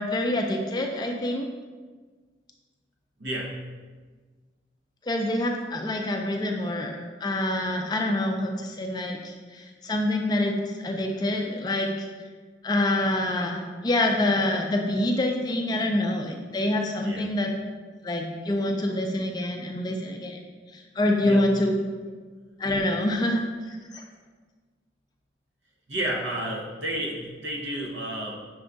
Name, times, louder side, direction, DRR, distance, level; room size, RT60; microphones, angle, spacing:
voice 1, 0.0-1.5 5.1-12.1 12.6-17.5 18.0-20.4 21.0-21.7 22.6-23.4 23.9-24.0, left 1 dB, 25° left, 3 dB, 0.3 m, -26 dB
voice 2, 3.2-3.5 17.0-17.3 21.2-21.4 25.9-28.3, right 1 dB, 90° right, -1 dB, 0.8 m, -31 dB
6.1 x 2.3 x 3.8 m, 1.4 s
head